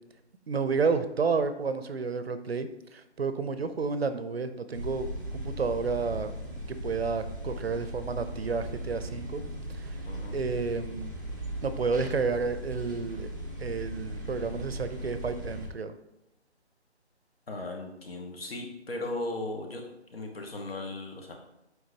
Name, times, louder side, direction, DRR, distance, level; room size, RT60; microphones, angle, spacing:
voice 1, 0.5-6.3 6.7-9.4 9.7-10.0 10.3-11.2 11.6-13.3 13.6-15.9, right 4 dB, 60° right, 11 dB, 0.6 m, -31 dB
sound 1, 4.7-15.7, right 1 dB, 20° right, 0.5 m, -38 dB
voice 2, 17.5-21.3, left 2 dB, 60° left, 2 dB, 1.4 m, -37 dB
7.8 x 4.9 x 2.8 m, 0.88 s
figure-of-eight pair, 160°, 34 cm